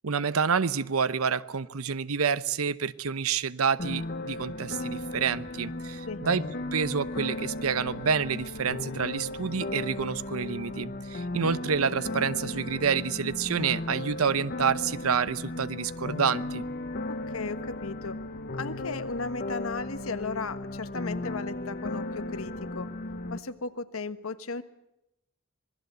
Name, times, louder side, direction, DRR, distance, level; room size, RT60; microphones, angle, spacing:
voice 1, 0.0-6.4 6.7-16.6, right 6 dB, 85° right, 16 dB, 0.8 m, -28 dB
sound 1, 3.8-23.4, left 2 dB, 45° left, 1.0 m, -36 dB
voice 2, 17.1-18.2 18.5-22.9 23.3-24.6, left 4 dB, 75° left, 11 dB, 1.3 m, -35 dB
26.0 x 20.0 x 8.0 m, 0.88 s
head